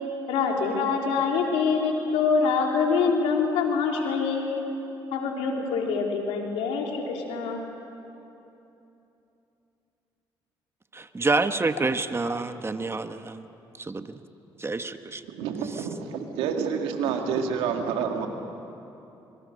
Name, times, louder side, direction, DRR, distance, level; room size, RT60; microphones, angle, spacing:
voice 1, 0.3-4.6 5.1-7.6, left 5 dB, 85° left, 1 dB, 3.4 m, -25 dB
voice 2, 10.9-13.5 13.8-14.2 14.6-15.2 15.6-15.9, right 3 dB, 25° right, 9 dB, 1.3 m, -28 dB
voice 3, 15.4-18.3, right 6 dB, 85° right, 4 dB, 2.1 m, -28 dB
26.0 x 23.0 x 6.6 m, 2.9 s
supercardioid pair, 60°, 10 cm